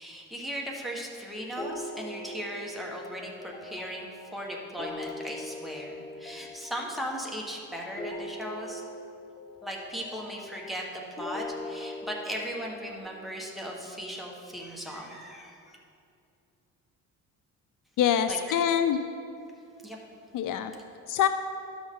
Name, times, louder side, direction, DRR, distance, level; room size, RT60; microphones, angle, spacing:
voice 1, 0.0-8.8 9.6-15.8 18.3-18.4 19.8-20.0, equal, ahead, -2 dB, 1.2 m, -37 dB
sound 1, 1.6-13.0, left 1 dB, 15° left, 0.4 m, -41 dB
voice 2, 18.0-19.0 20.3-20.7 21.1-21.3, left 9 dB, 70° left, 9 dB, 0.5 m, -24 dB
12.5 x 6.2 x 3.6 m, 2.5 s
cardioid pair, 125°, 33 cm